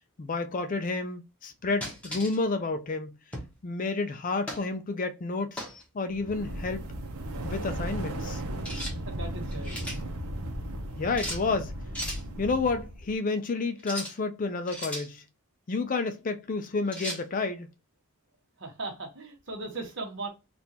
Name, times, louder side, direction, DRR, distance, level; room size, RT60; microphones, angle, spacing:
voice 1, 0.2-3.2 3.6-5.7 5.9-6.8 7.4-8.4 11.0-11.7 12.4-15.2 15.7-17.7, left 3 dB, 35° left, 0.4 m, -30 dB
sound 1, 1.8-2.4 3.3-3.6 4.5-4.7 5.6-5.8 8.6-9.0 9.4-10.0 11.2-11.4 11.9-12.2 13.8-14.2 14.7-15.1 16.9-17.2, equal, 5° left, 1.0 m, -36 dB
sound 2, 6.1-13.1, right 1 dB, 75° right, 0.8 m, -36 dB
voice 2, 8.8-9.9 18.6-20.3, right 3 dB, 55° right, 1.3 m, -38 dB
3.5 x 2.5 x 2.8 m
head